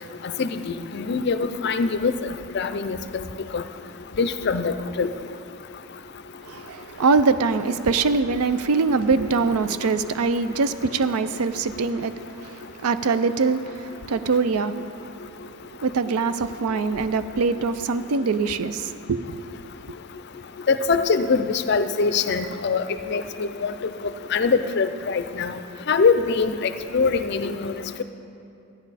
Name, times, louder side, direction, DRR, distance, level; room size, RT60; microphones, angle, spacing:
voice 1, 0.9-2.1 2.5-3.0 3.5-3.6 4.2-5.1 20.7-22.8 23.1-23.7 24.3-25.6 25.9-27.7, left 4 dB, 50° left, 0.4 m, -23 dB
voice 2, 6.5-12.2 12.6-14.7 15.8-19.4, right 4 dB, 85° right, 0.5 m, -23 dB
13.5 x 9.9 x 4.1 m
head